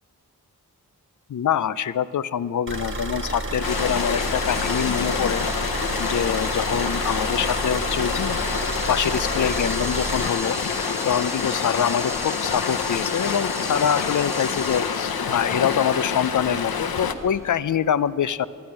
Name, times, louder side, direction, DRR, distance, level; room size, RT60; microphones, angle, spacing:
voice 1, 1.3-5.4 6.0-8.4 8.9-10.6 11.0-18.5, left 8 dB, 55° left, 17 dB, 0.5 m, -25 dB
sound 1, 2.7-10.3, right 1 dB, 35° right, 1.5 m, -30 dB
Stream, 3.6-17.1, left 6 dB, 80° left, 0.9 m, -27 dB
sound 2, 3.7-17.5, equal, 10° right, 1.0 m, -36 dB
13.0 x 10.5 x 9.8 m, 2.9 s
wide cardioid pair, 75°, 36 cm